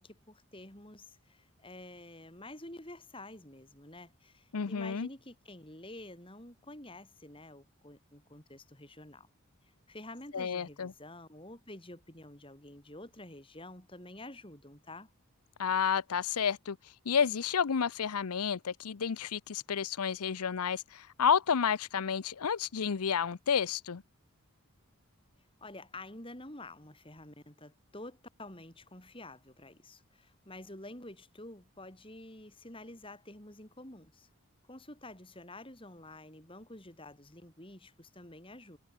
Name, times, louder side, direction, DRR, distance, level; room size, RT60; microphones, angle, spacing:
voice 1, 0.0-9.3 9.9-15.1 25.6-34.3 34.7-38.8, left 1 dB, 25° left, 4.9 m, -49 dB
voice 2, 4.5-5.1 10.3-10.9 15.6-16.8 17.1-24.0, left 7 dB, 90° left, 0.6 m, -30 dB
head